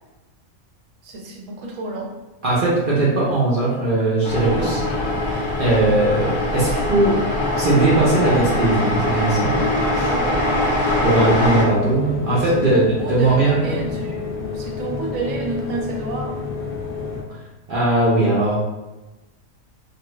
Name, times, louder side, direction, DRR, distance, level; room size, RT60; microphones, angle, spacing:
voice 1, 1.0-2.1 9.4-11.5 12.3-16.4, right 3 dB, 70° right, 0 dB, 1.0 m, -31 dB
voice 2, 2.4-4.8 5.6-7.2 7.6-9.5 10.0-10.1 11.0-12.8 13.1-13.9 17.7-18.5, right 2 dB, 50° right, -7 dB, 0.7 m, -19 dB
sound 1, 4.2-11.6, left 1 dB, 55° left, 0.8 m, -23 dB
sound 2, 4.3-17.2, left 5 dB, 75° left, 1.0 m, -30 dB
2.6 x 2.3 x 2.9 m, 1.1 s
omnidirectional pair, 1.5 m